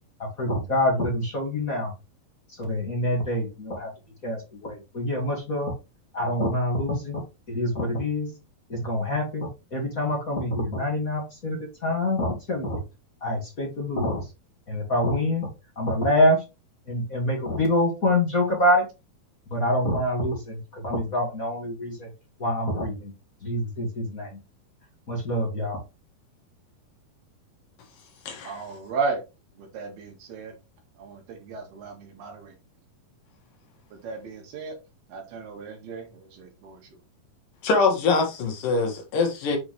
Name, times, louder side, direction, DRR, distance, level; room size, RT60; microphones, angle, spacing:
voice 1, 0.4-1.9 2.6-3.9 4.2-5.7 6.1-7.2 7.5-8.3 8.7-12.8 13.2-14.2 14.7-15.5 15.8-16.4 16.9-18.8 19.5-22.1 22.4-23.1 23.4-24.3 25.1-25.8, left 1 dB, 30° left, 1.9 m, -26 dB
voice 2, 28.4-29.2 29.7-30.5 31.0-32.5 34.0-34.7 35.1-36.1 36.4-36.8, right 4 dB, 85° right, 3.9 m, -34 dB
voice 3, 37.6-39.6, left 4 dB, 65° left, 3.1 m, -23 dB
8.1 x 4.8 x 3.2 m
omnidirectional pair, 4.3 m